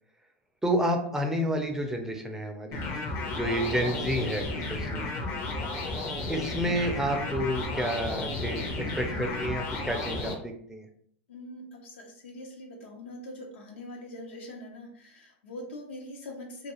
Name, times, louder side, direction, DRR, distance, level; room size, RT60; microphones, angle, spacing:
voice 1, 0.6-2.8 3.3-5.1 6.3-10.9, equal, 10° right, 4 dB, 0.4 m, -30 dB
sound 1, 2.7-10.3, left 2 dB, 45° left, 0.7 m, -33 dB
voice 2, 11.3-16.7, left 1 dB, 80° left, 0 dB, 0.9 m, -43 dB
2.3 x 2.3 x 2.9 m, 0.63 s
hypercardioid pair, 105°, 6 cm